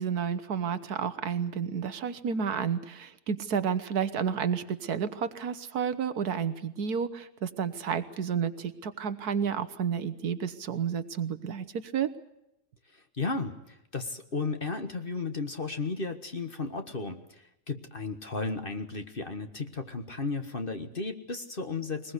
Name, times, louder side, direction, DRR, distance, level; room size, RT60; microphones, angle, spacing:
voice 1, 0.0-12.1, right 7 dB, 70° right, 13 dB, 1.6 m, -31 dB
voice 2, 13.2-22.1, left 3 dB, 35° left, 7 dB, 1.5 m, -34 dB
21.5 x 21.0 x 8.2 m, 0.84 s
omnidirectional pair, 1.8 m